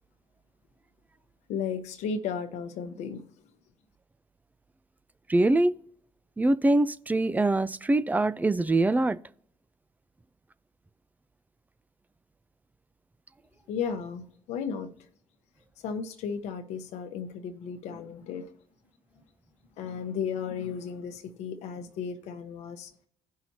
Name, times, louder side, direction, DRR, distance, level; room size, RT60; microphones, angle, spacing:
voice 1, 1.5-3.2 13.7-14.9 15.8-18.5 19.8-22.9, left 6 dB, 80° left, 1.0 m, -34 dB
voice 2, 5.3-5.7 6.4-9.2, right 2 dB, 15° right, 0.4 m, -23 dB
16.0 x 5.6 x 2.8 m
supercardioid pair, 70°, 12 cm